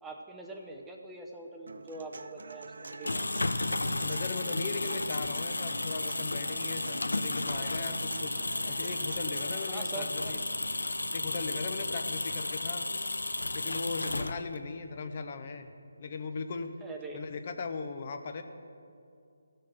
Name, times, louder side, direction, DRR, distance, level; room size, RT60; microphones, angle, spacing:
voice 1, 0.0-3.2 9.7-10.5 16.8-17.2, right 3 dB, 5° right, 1 dB, 0.6 m, -43 dB
Human voice / Acoustic guitar, 1.7-9.7, right 4 dB, 65° right, 0.5 m, -46 dB
sound 1, 2.8-14.7, left 2 dB, 90° left, 0.5 m, -33 dB
voice 2, 4.0-8.3 8.7-10.4 11.1-12.9 13.5-15.7 16.0-16.7 17.1-18.4, left 4 dB, 40° left, 8 dB, 0.8 m, -38 dB
15.5 x 6.5 x 6.2 m, 2.5 s
figure-of-eight pair, 160°, 0 cm